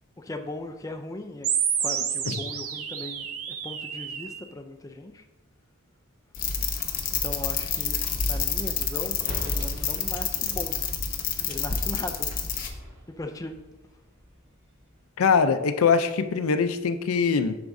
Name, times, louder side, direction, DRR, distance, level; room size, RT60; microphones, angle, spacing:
voice 1, 0.2-1.5 1.8-3.3 3.6-5.2 7.2-10.8 11.5-12.3 13.2-13.5, left 2 dB, 15° left, 5 dB, 0.4 m, -38 dB
sound 1, 1.4-4.4, right 8 dB, 85° right, 0.6 m, -29 dB
sound 2, 6.3-12.7, left 7 dB, 40° left, 0.7 m, -28 dB
sound 3, 9.2-15.1, equal, 50° right, 2.2 m, -44 dB
voice 2, 15.2-17.6, left 5 dB, 90° left, 10 dB, 0.5 m, -23 dB
8.0 x 5.9 x 2.6 m, 1.1 s
head